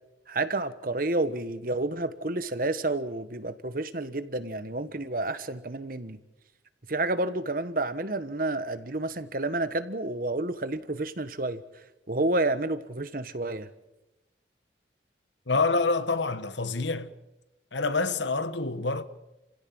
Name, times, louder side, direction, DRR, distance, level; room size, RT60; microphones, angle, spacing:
voice 1, 0.3-6.2 6.9-11.6 12.1-13.7, right 2 dB, 50° right, 1.3 m, -30 dB
voice 2, 15.5-17.1 17.7-19.0, left 3 dB, 80° left, 1.4 m, -27 dB
29.5 x 16.5 x 7.8 m
head